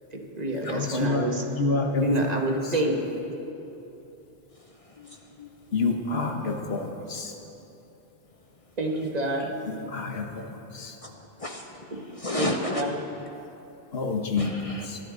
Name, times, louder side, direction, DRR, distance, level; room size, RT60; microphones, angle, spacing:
voice 1, 0.1-1.4 2.0-3.0 8.8-9.5 11.9-12.0 12.3-12.5 12.7-12.9, right 1 dB, 35° right, 1 dB, 1.5 m, -27 dB
voice 2, 0.7-1.2 1.6-2.0 5.7-7.3 9.7-10.3 10.7-10.9 13.9-14.5 14.9-15.0, left 3 dB, 65° left, 2 dB, 1.5 m, -28 dB
voice 3, 5.0-5.5 11.0-11.1 11.4-11.7 12.1-12.8 14.4-14.9, left 1 dB, 35° left, 3 dB, 0.7 m, -32 dB
22.0 x 10.5 x 3.9 m, 3.0 s
omnidirectional pair, 1.2 m